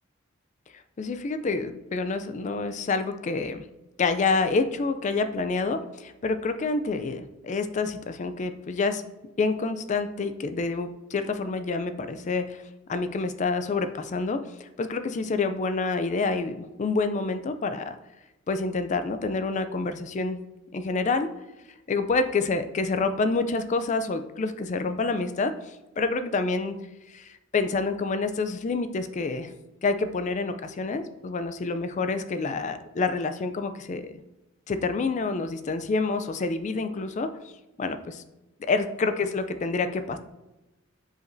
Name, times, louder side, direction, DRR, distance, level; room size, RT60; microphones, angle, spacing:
voice 1, 1.0-3.6 4.0-9.0 9.4-12.6 12.9-18.0 18.5-20.4 20.7-21.3 21.9-26.8 27.1-29.5 29.8-34.1 34.7-37.3 37.8-38.2 38.6-40.2, left 3 dB, 35° left, 9 dB, 0.4 m, -28 dB
7.8 x 5.0 x 2.6 m, 1.0 s
head